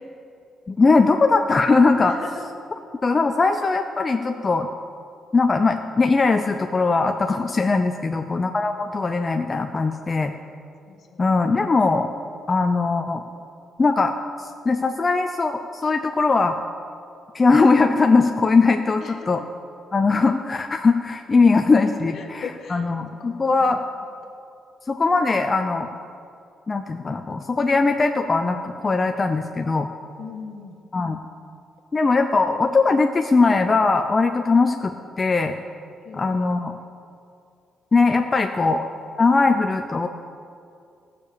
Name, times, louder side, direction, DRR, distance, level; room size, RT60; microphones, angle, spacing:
voice 1, 0.7-2.2 3.0-4.7 5.3-10.3 11.2-12.1 12.5-13.2 13.8-16.6 17.3-19.4 19.9-23.8 24.9-25.9 26.7-29.9 30.9-31.2 31.9-35.5 36.1-36.8 37.9-38.8 39.2-40.1, left 3 dB, 30° left, 5 dB, 0.6 m, -20 dB
voice 2, 2.0-2.5 8.0-8.4 10.9-11.2 19.0-19.5 22.1-22.9 23.2-23.8 30.2-30.8 36.0-36.4 38.6-38.7, left 6 dB, 60° left, 4 dB, 1.4 m, -39 dB
15.0 x 6.8 x 6.9 m, 2.5 s
cardioid pair, 90°, 0 cm